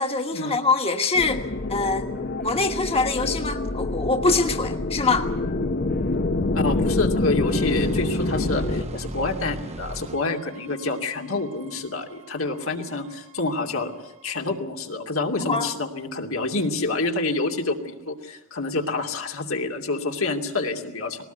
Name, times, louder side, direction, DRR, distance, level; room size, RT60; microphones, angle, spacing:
voice 1, 0.0-1.4 1.7-2.1 2.4-5.3 15.5-15.7, left 3 dB, 30° left, 4 dB, 1.5 m, -24 dB
sound 1, 1.1-8.8, left 2 dB, 45° left, 0.9 m, -26 dB
voice 2, 6.5-13.9 14.2-21.2, left 3 dB, 85° left, 2 dB, 2.7 m, -27 dB
sound 2, 7.5-13.7 14.0-14.2, right 1 dB, 30° right, 0.9 m, -37 dB
20.0 x 18.5 x 9.3 m, 0.95 s
head